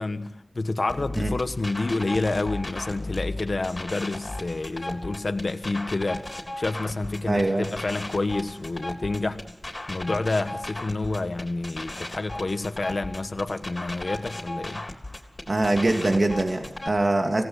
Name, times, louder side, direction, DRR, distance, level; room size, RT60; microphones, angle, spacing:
voice 1, 0.0-9.4 9.9-14.8, left 3 dB, 80° left, 8 dB, 1.3 m, -29 dB
sound 1, 0.9-16.9, left 1 dB, 45° left, 3.6 m, -36 dB
voice 2, 7.3-7.7 15.5-17.4, right 2 dB, 65° right, 3 dB, 2.4 m, -23 dB
26.0 x 18.0 x 8.1 m, 1.0 s
wide cardioid pair, 50°, 0 cm